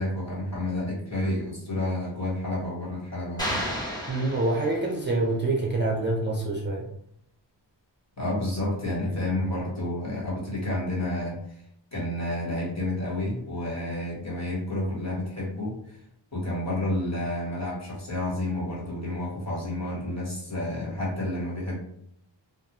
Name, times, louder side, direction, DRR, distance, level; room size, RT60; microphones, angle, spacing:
voice 1, 0.0-3.7 8.2-11.6 11.9-16.0 16.3-21.8, left 1 dB, 35° left, -6 dB, 1.4 m, -30 dB
sound 1, 3.4-5.1, equal, 10° left, 1.0 m, -32 dB
voice 2, 4.1-6.9, right 2 dB, 25° right, -2 dB, 0.5 m, -26 dB
2.4 x 2.2 x 3.0 m, 0.70 s
wide cardioid pair, 60°, 45 cm